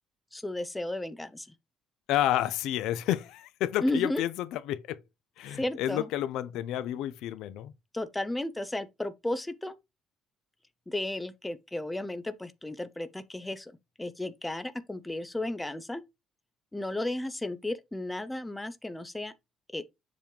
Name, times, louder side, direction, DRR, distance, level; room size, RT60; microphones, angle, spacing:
voice 1, 0.3-1.5 3.8-4.2 5.6-6.1 7.9-9.8 10.9-13.7 14.0-16.0 16.7-19.3 19.7-19.8, left 1 dB, 5° left, 0.5 m, -33 dB
voice 2, 2.1-5.0 5.4-7.7, left 12 dB, 70° left, 0.5 m, -30 dB
7.3 x 3.1 x 5.2 m
cardioid pair, 180°, 0 cm